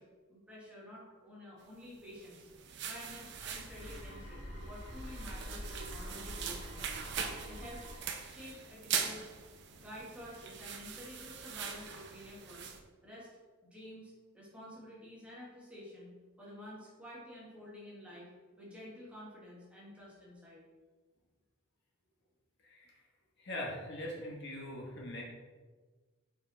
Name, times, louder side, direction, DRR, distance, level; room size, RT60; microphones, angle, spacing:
voice 1, 0.0-2.5 2.9-6.9 7.5-7.8 8.2-9.3 9.7-12.6 13.0-13.3 13.6-18.3 18.6-20.6, left 1 dB, 5° right, -6 dB, 1.7 m, -50 dB
sound 1, 2.1-12.8, right 7 dB, 50° right, 0.7 m, -42 dB
sound 2, 3.0-8.0, equal, 75° left, 1.7 m, -46 dB
voice 2, 23.4-25.2, left 1 dB, 50° left, -2 dB, 1.2 m, -41 dB
5.8 x 5.5 x 4.2 m, 1.4 s
head